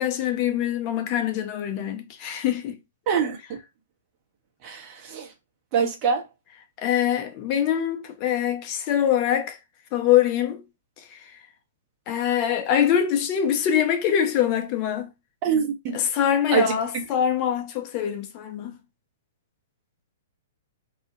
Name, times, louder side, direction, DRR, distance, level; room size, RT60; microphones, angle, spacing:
voice 1, 0.0-2.8 6.8-9.6 9.9-10.6 11.1-11.4 12.1-15.1 15.9-18.8, left 10 dB, 35° left, 0.5 m, -24 dB
voice 2, 3.1-3.6 4.6-5.3 5.7-6.2 15.4-16.0 16.5-17.0, right 6 dB, 35° right, 0.7 m, -25 dB
2.3 x 2.1 x 2.9 m
figure-of-eight pair, 110°, 0 cm